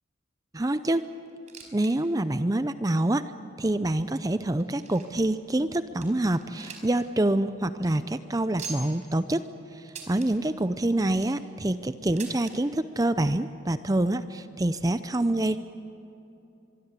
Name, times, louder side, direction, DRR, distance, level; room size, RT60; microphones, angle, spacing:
voice 1, 0.5-1.1 1.7-3.2 3.6-15.6, right 1 dB, 20° right, 12 dB, 0.5 m, -26 dB
sound 1, 1.3-1.9 2.2-2.3 3.0-3.1 3.8-5.3 5.7-5.8 6.0-7.0 7.3-7.4 7.7-7.9 8.6-9.1 9.9-10.3 10.9-11.4 12.2-12.6 13.5-13.6 13.8-13.9 14.7-14.8, right 5 dB, 40° right, 4.6 m, -42 dB
24.5 x 23.0 x 8.2 m, 2.8 s
head